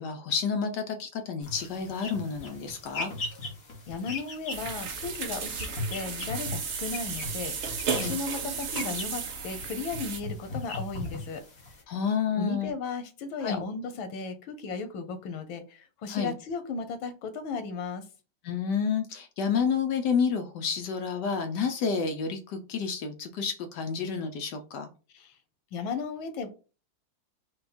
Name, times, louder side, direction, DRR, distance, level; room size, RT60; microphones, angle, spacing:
voice 1, 0.0-3.1 7.9-8.2 11.9-12.7 13.4-13.6 16.1-16.3 18.4-24.9, left 6 dB, 70° left, 6 dB, 1.1 m, -30 dB
sound 1, 1.4-11.8, left 2 dB, 50° left, 1.8 m, -39 dB
voice 2, 3.9-11.4 12.4-18.0 25.1-25.3 25.7-26.5, left 4 dB, 90° left, 9 dB, 1.6 m, -35 dB
wash dishes, 4.5-10.2, right 6 dB, 60° right, 0.9 m, -34 dB
5.2 x 2.3 x 4.2 m, 0.34 s
omnidirectional pair, 2.1 m